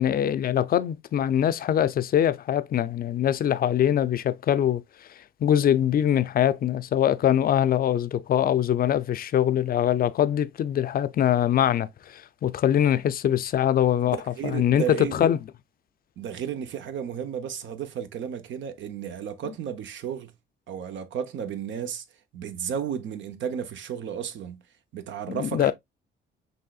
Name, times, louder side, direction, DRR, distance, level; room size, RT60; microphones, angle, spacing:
voice 1, 0.0-4.8 5.4-14.2 14.4-15.4 25.3-25.7, left 10 dB, 50° left, 0.5 m, -23 dB
voice 2, 14.0-15.3 16.2-20.3 20.7-22.0 22.3-24.6 24.9-25.7, right 8 dB, 70° right, 0.8 m, -33 dB
5.4 x 3.1 x 2.3 m
cardioid pair, 90°, 20 cm